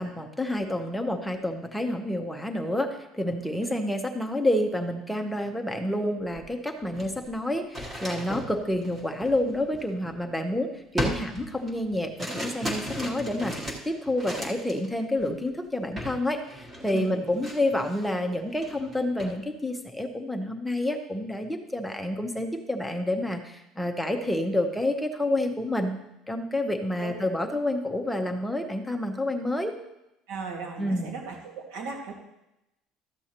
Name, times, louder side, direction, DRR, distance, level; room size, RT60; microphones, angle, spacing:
voice 1, 0.0-26.0 26.3-29.7 30.8-31.1, left 1 dB, ahead, 3 dB, 0.7 m, -29 dB
sound 1, 6.3-6.4 6.8-10.4 11.0-14.9 15.2-15.5 16.0-16.2 16.5-18.1 18.5-19.4, equal, 15° right, 1.2 m, -36 dB
voice 2, 16.9-17.4 27.0-27.1 30.3-32.1, right 4 dB, 85° right, 0 dB, 1.9 m, -37 dB
13.0 x 7.9 x 2.9 m, 0.89 s
cardioid pair, 175°, 0 cm